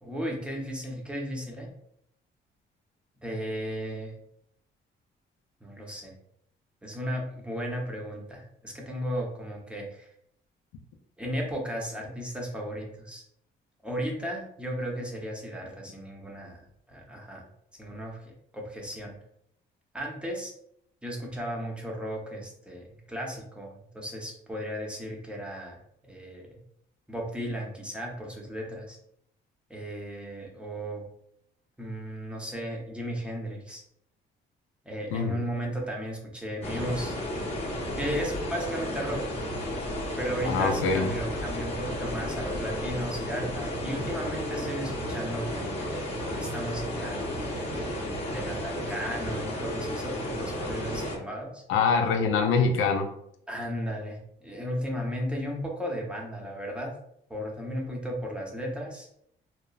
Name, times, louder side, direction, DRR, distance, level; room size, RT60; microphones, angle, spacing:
voice 1, 0.0-1.7 3.2-4.2 5.6-6.1 6.8-10.1 11.2-13.2 13.8-17.5 17.8-19.1 19.9-20.5 21.0-25.8 26.0-26.5 27.1-29.0 29.7-31.0 31.8-33.8 34.9-37.2 38.0-39.2 40.2-51.6 53.5-56.9 57.3-59.1, equal, 5° right, -1 dB, 0.6 m, -35 dB
sound 1, 36.6-51.2, left 1 dB, 30° left, 0.8 m, -33 dB
voice 2, 40.4-41.1 51.7-53.1, left 4 dB, 90° left, 4 dB, 0.4 m, -24 dB
2.9 x 2.1 x 2.3 m, 0.72 s
cardioid pair, 90°, 20 cm